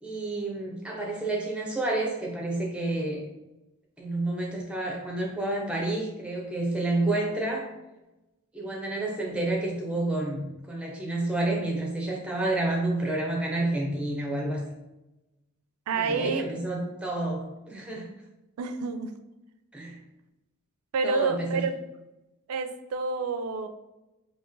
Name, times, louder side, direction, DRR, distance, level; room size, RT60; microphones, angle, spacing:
voice 1, 0.0-3.2 4.0-7.7 8.5-14.6 15.9-18.1 19.7-20.0 21.0-21.7, right 2 dB, 5° right, -2 dB, 0.6 m, -29 dB
voice 2, 15.9-16.4 18.6-19.1 20.9-21.7 22.5-23.7, right 4 dB, 85° right, 8 dB, 0.4 m, -28 dB
3.0 x 2.8 x 3.6 m, 1.0 s
head